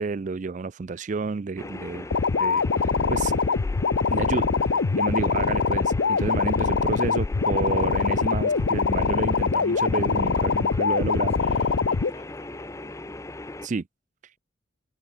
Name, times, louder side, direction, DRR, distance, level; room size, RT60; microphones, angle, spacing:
voice 1, 0.0-2.1 2.4-3.6 4.1-4.5 5.0-11.3 13.6-13.8, right 4 dB, 40° right, 0.4 m, -30 dB
sound 1, 1.6-13.7, left 2 dB, 15° left, 0.6 m, -39 dB
sound 2, 2.1-12.1, left 5 dB, 70° left, 0.6 m, -23 dB
voice 2, 11.2-13.0, left 2 dB, 30° left, 5.9 m, -47 dB
head